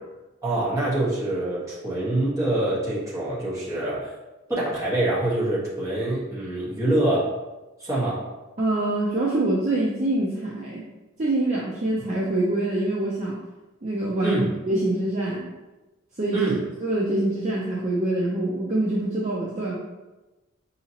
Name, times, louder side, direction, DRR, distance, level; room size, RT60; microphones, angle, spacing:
voice 1, 0.4-4.1 4.5-7.3 7.8-8.2 14.2-14.5 16.3-16.6, right 1 dB, 15° right, -8 dB, 1.3 m, -25 dB
voice 2, 8.6-10.8 11.2-13.4 13.8-14.4 14.7-15.4 16.2-16.5 16.8-19.8, right 1 dB, 35° right, -5 dB, 0.5 m, -25 dB
4.7 x 2.8 x 2.8 m, 1.1 s
head